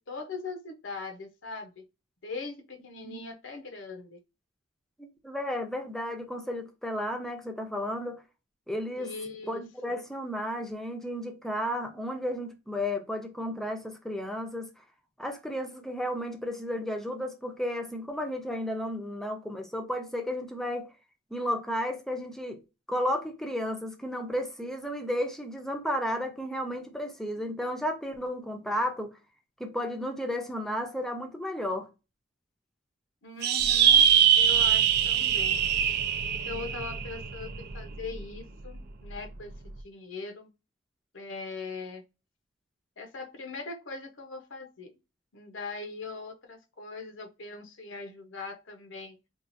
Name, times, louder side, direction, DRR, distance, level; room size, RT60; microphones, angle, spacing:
voice 1, 0.0-1.8 2.2-4.2 9.0-9.6 33.2-34.1 34.4-35.7 36.2-40.5 41.1-42.0 43.0-44.9 45.3-49.2, left 4 dB, 75° left, 0.8 m, -41 dB
voice 2, 5.2-8.2 8.7-9.1 9.5-14.7 15.2-20.9 21.3-22.6 22.9-29.1 29.6-31.9, equal, ahead, 0.6 m, -33 dB
sound 1, 33.4-38.2, right 9 dB, 55° right, 0.4 m, -23 dB
4.5 x 2.4 x 2.6 m
head